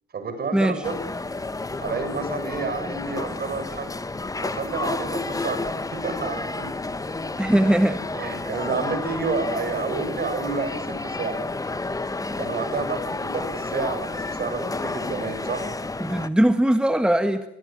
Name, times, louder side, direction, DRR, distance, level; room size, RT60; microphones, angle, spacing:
voice 1, 0.1-1.0 1.8-3.9 4.4-6.7 8.1-11.4 12.4-15.7, right 4 dB, 50° right, 8 dB, 6.4 m, -30 dB
sound 1, 0.8-16.3, left 3 dB, 15° left, 1.3 m, -31 dB
voice 2, 7.4-8.0 12.2-12.4 16.0-17.5, right 1 dB, 5° right, 8 dB, 1.6 m, -20 dB
24.5 x 20.5 x 8.6 m, 0.82 s
cardioid pair, 90°, 20 cm